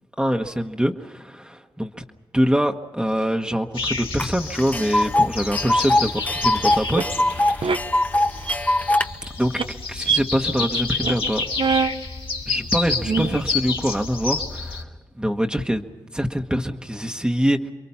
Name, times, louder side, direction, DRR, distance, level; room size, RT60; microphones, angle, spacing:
voice 1, 0.2-2.0 2.3-7.7 9.4-9.6 9.9-11.4 12.5-14.9 15.2-15.9 16.1-17.7, equal, 10° right, 3 dB, 1.3 m, -24 dB
sound 1, 3.7-14.8, left 4 dB, 70° left, 2.3 m, -29 dB
Tick, 4.2-4.3 4.6-9.1, left 1 dB, 15° left, 0.8 m, -21 dB
sound 2, 6.7-7.0 7.6-7.8 8.3-8.6 9.0-9.3 9.5-9.6 10.0-10.2 10.6-10.7 11.0-11.3 11.6-11.9 12.6-12.7 13.0-13.4, right 5 dB, 70° right, 0.8 m, -23 dB
28.5 x 23.0 x 5.7 m, 1.4 s
cardioid pair, 45°, 9 cm